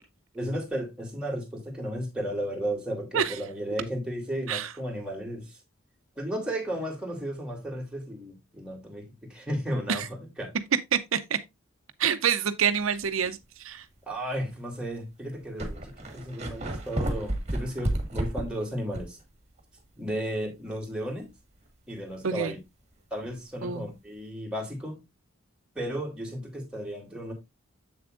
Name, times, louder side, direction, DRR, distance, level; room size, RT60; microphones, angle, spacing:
voice 1, 0.3-5.6 6.2-10.5 14.1-19.2 20.0-21.3 21.9-22.6 23.1-25.0 25.7-27.3, equal, 5° right, 2.8 m, -34 dB
voice 2, 10.9-11.4 12.0-13.9 22.2-22.5 23.6-23.9, right 7 dB, 80° right, 0.6 m, -27 dB
sound 1, 13.0-13.3 14.0-14.1 15.0-15.1 15.2-19.2 19.6-19.7 23.2-23.4, right 1 dB, 35° right, 1.8 m, -32 dB
7.7 x 7.0 x 2.5 m
head